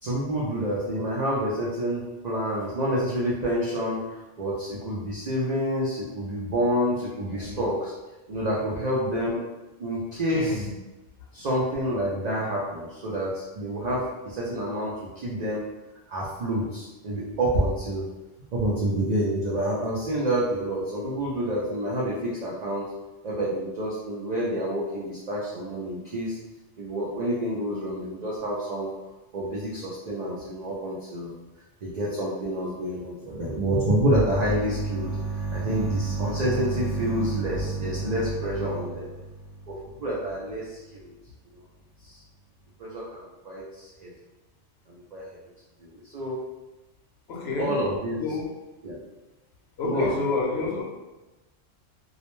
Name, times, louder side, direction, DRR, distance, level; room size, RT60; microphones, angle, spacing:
voice 1, 0.0-4.0 4.4-7.9 8.3-9.4 9.8-10.7 11.3-15.7 16.1-18.1 18.5-22.9 23.2-26.4 26.8-28.9 29.3-31.3 31.8-39.1 39.7-41.1 42.0-42.2 42.8-44.1 44.9-45.3 45.8-46.4 47.6-48.2 48.8-49.0 49.8-50.2, right 1 dB, 85° right, -5 dB, 0.3 m, -28 dB
voice 2, 10.3-10.6 47.3-47.7 48.2-48.5 49.8-50.8, left 3 dB, 65° left, -3 dB, 0.8 m, -28 dB
2.3 x 2.1 x 3.0 m, 1.1 s
omnidirectional pair, 1.3 m